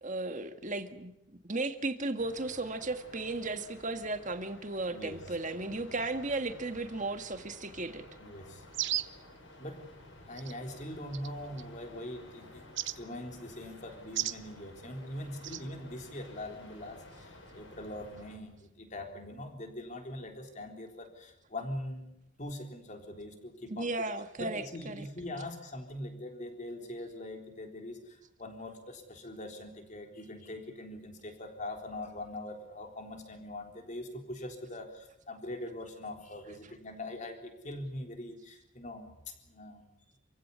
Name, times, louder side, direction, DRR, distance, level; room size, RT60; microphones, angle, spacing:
voice 1, 0.0-8.0 23.7-25.1, right 2 dB, 35° right, 1.8 m, -35 dB
sound 1, 2.2-18.4, left 1 dB, 60° left, 7.3 m, -53 dB
voice 2, 8.2-8.6 9.6-9.8 10.2-23.9 24.4-39.9, left 1 dB, 35° left, 3.9 m, -42 dB
sound 2, 8.7-9.2 10.4-10.5 11.1-11.6 12.7-13.0 14.1-14.4 15.4-15.6, right 13 dB, 55° right, 0.8 m, -34 dB
27.5 x 16.0 x 9.7 m
head